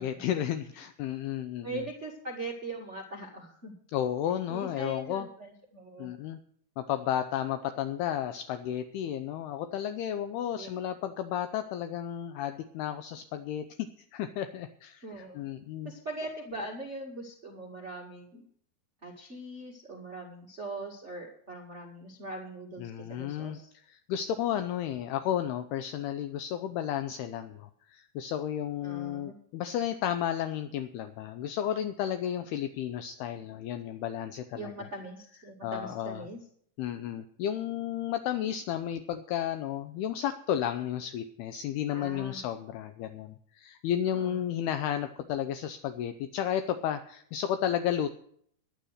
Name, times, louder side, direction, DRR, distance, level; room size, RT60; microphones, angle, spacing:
voice 1, 0.0-1.8 3.9-5.3 6.0-6.4 6.8-13.7 14.1-15.9 22.8-34.9 35.6-36.3 36.8-48.1, left 10 dB, 80° left, 9 dB, 2.5 m, -33 dB
voice 2, 1.6-3.7 4.5-6.1 10.6-10.7 15.0-15.4 15.8-18.4 19.0-23.7 28.8-29.3 34.5-36.4 41.9-42.4 44.1-44.4, right 2 dB, 45° right, 0 dB, 0.9 m, -41 dB
11.5 x 10.5 x 6.4 m, 0.63 s
omnidirectional pair, 4.8 m